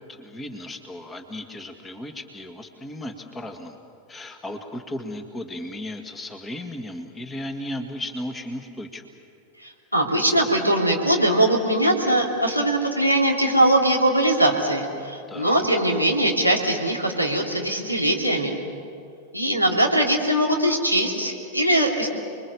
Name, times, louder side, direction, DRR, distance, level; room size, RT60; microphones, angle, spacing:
voice 1, 0.1-3.8 4.1-9.1 15.3-15.7, left 1 dB, 15° left, 6 dB, 1.9 m, -35 dB
voice 2, 9.6-18.6 19.3-22.1, right 1 dB, 90° left, 1 dB, 3.0 m, -21 dB
30.0 x 22.0 x 7.0 m, 2.4 s
figure-of-eight pair, 90°, 0 cm